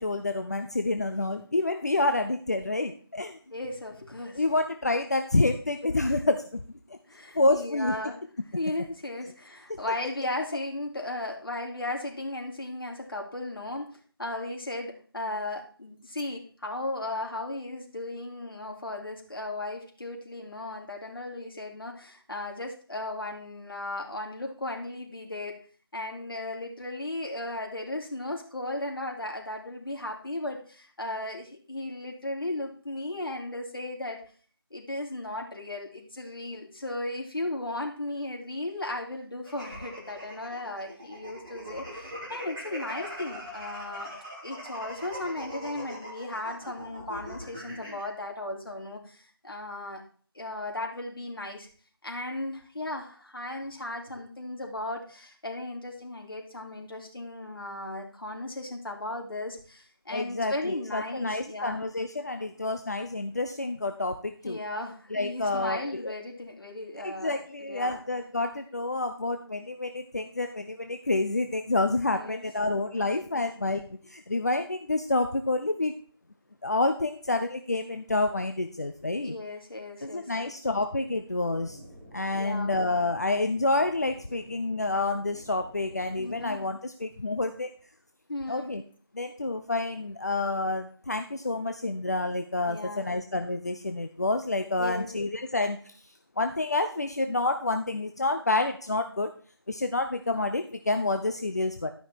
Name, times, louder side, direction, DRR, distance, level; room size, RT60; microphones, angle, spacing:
voice 1, 0.0-3.4 4.3-6.6 6.9-7.0 7.3-7.9 9.7-9.8 60.1-64.6 65.1-66.1 67.0-75.9 76.6-79.3 80.0-81.8 82.1-87.7 88.5-88.8 89.1-99.3 99.7-101.9, left 2 dB, 40° left, 7 dB, 0.8 m, -28 dB
voice 2, 3.5-4.4 6.0-6.2 7.1-8.2 8.6-25.6 25.9-34.2 34.7-44.1 44.4-50.0 50.3-51.7 52.0-61.8 64.4-67.4 67.7-68.0 72.0-72.4 73.0-73.1 73.3-73.5 79.2-80.7 82.3-82.8 86.2-86.6 88.3-88.7 92.7-93.1 94.8-95.1, left 2 dB, 60° left, 0 dB, 3.6 m, -36 dB
sound 1, 39.5-48.1, equal, 10° right, 2.0 m, -41 dB
sound 2, 81.5-86.5, right 1 dB, 40° right, 5.6 m, -50 dB
13.0 x 5.8 x 4.5 m, 0.44 s
figure-of-eight pair, 170°, 13 cm